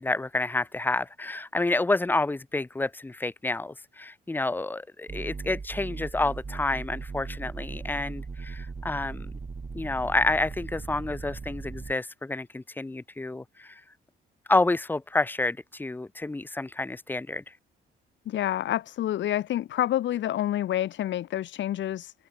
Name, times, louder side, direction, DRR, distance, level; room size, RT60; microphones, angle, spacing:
voice 1, 0.0-9.3 9.7-13.8 14.5-17.5, left 2 dB, 10° left, 0.6 m, -29 dB
sound 1, 5.1-11.9, right 4 dB, 30° right, 4.3 m, -38 dB
voice 2, 18.3-22.1, left 12 dB, 70° left, 1.1 m, -28 dB
open air
cardioid pair, 90°, 20 cm